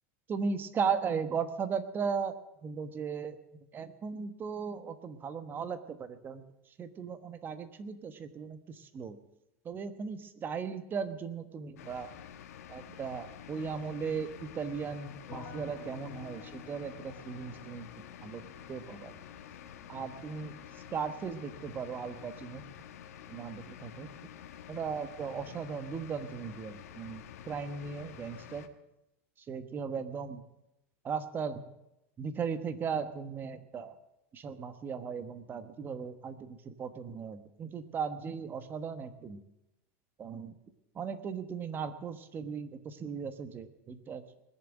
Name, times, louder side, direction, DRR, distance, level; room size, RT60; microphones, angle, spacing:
voice 1, 0.3-2.4 2.6-3.4 3.7-9.2 9.6-12.1 12.7-18.4 18.7-19.2 19.9-22.7 23.3-24.1 24.7-28.7 29.4-30.4 31.0-31.6 32.2-34.0 34.3-39.4 40.2-40.5 40.9-44.2, right 6 dB, 25° right, 11 dB, 1.2 m, -37 dB
sound 1, 11.8-28.7, left 9 dB, 90° left, 1.2 m, -49 dB
sound 2, 15.3-26.3 26.6-27.4, left 5 dB, 40° left, 1.8 m, -55 dB
20.5 x 7.2 x 9.0 m, 0.90 s
supercardioid pair, 135°, 8 cm